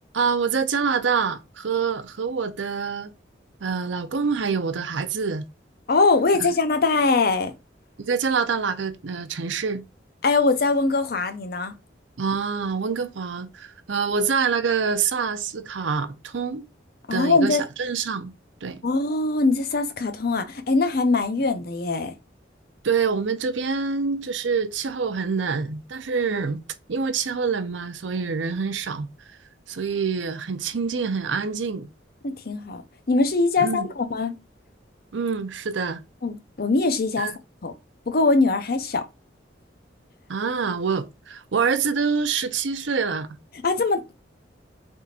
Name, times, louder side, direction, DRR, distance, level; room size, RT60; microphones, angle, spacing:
voice 1, 0.1-3.1 3.6-5.4 6.4-6.5 8.1-9.8 12.2-16.7 17.1-18.3 18.6-18.8 22.8-26.6 26.9-29.1 29.7-31.9 33.6-33.9 35.1-36.0 37.2-37.3 40.3-43.3, right 5 dB, 80° right, 0.6 m, -26 dB
voice 2, 5.9-7.5 10.2-11.7 17.1-17.6 18.8-22.1 32.2-32.8 33.1-34.3 36.2-37.3 37.6-37.7 38.1-39.0 43.6-44.0, left 3 dB, 55° left, 0.6 m, -22 dB
4.2 x 3.5 x 2.5 m
head